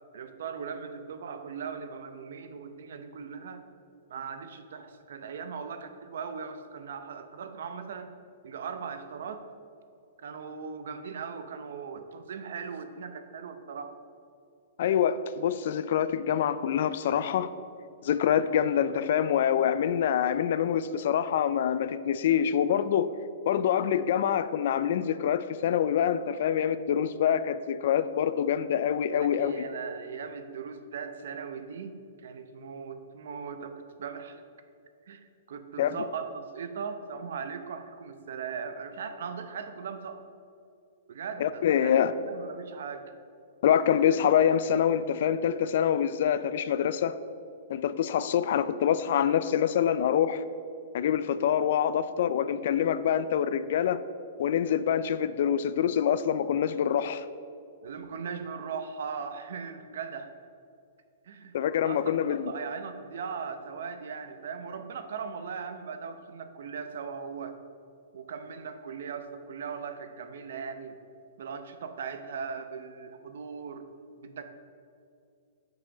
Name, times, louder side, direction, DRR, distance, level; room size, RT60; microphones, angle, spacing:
voice 1, 0.1-3.6 4.1-8.1 8.4-9.4 10.2-14.0 29.1-34.4 35.1-35.2 35.5-40.2 41.1-43.1 57.8-60.3 61.2-67.6 68.1-70.9 71.4-73.9 74.2-74.4, right 6 dB, 70° right, 8 dB, 0.7 m, -39 dB
voice 2, 14.8-17.5 18.0-23.1 23.4-29.6 35.8-36.0 41.4-42.1 43.6-47.2 47.7-50.4 50.9-54.0 54.4-57.3 61.5-62.5, left 9 dB, 55° left, 14 dB, 0.3 m, -25 dB
7.4 x 6.2 x 4.9 m, 2.5 s
hypercardioid pair, 165°, 0 cm